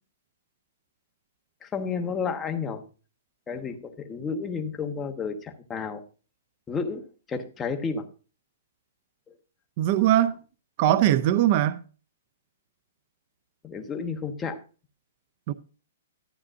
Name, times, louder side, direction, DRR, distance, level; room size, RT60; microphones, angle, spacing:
voice 1, 1.6-2.8 3.5-6.0 6.7-8.1 13.6-14.6, left 5 dB, 10° left, 1.1 m, -31 dB
voice 2, 9.8-10.3 10.8-11.8 15.5-15.6, right 12 dB, 35° right, 0.5 m, -21 dB
12.5 x 9.5 x 2.5 m
hypercardioid pair, 165°, 0 cm